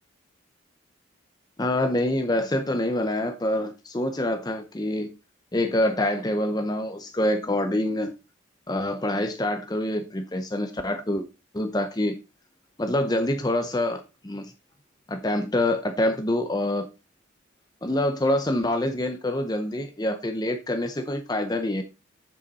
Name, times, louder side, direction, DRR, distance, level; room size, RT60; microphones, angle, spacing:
voice 1, 1.6-5.1 5.5-8.1 8.7-11.3 11.5-12.2 12.8-14.5 15.1-16.9 17.8-21.8, left 1 dB, 20° left, 0.6 m, -26 dB
7.8 x 7.0 x 4.0 m
head